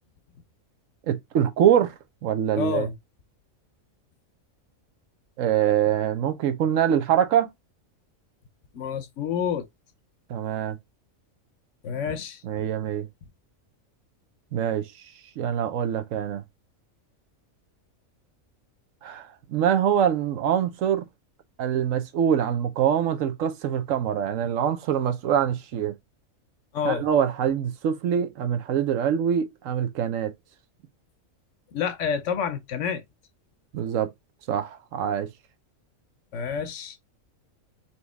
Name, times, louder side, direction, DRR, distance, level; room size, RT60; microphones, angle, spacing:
voice 1, 1.1-1.9 2.2-2.9 5.4-7.5 10.3-10.8 12.4-13.1 14.5-14.9 15.4-16.4 19.0-21.1 21.6-25.9 26.8-30.3 33.7-34.1 34.5-35.3, right 9 dB, 75° right, 1.0 m, -24 dB
voice 2, 2.6-2.9 8.7-9.7 11.8-12.4 26.7-27.0 31.7-33.0 36.3-37.0, left 7 dB, 70° left, 1.0 m, -28 dB
4.2 x 2.9 x 3.3 m
omnidirectional pair, 1.4 m